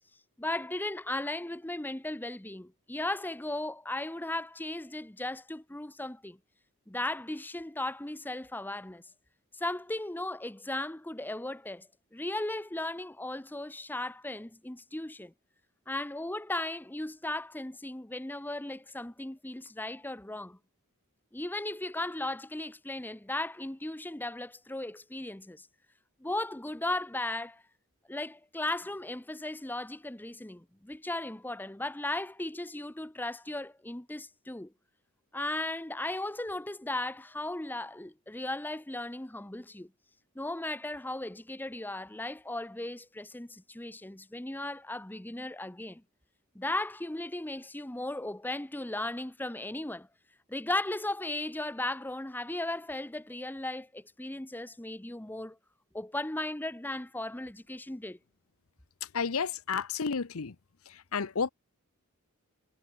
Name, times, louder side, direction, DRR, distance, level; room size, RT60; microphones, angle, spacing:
voice 1, 0.4-6.4 6.9-9.0 9.6-15.3 15.9-20.6 21.3-25.7 26.2-27.6 28.1-34.7 35.3-39.9 40.3-46.0 46.5-50.1 50.5-55.6 55.9-58.2, left 2 dB, 10° left, 0.8 m, -36 dB
voice 2, 59.0-60.6 60.9-61.5, left 5 dB, 70° left, 0.8 m, -32 dB
head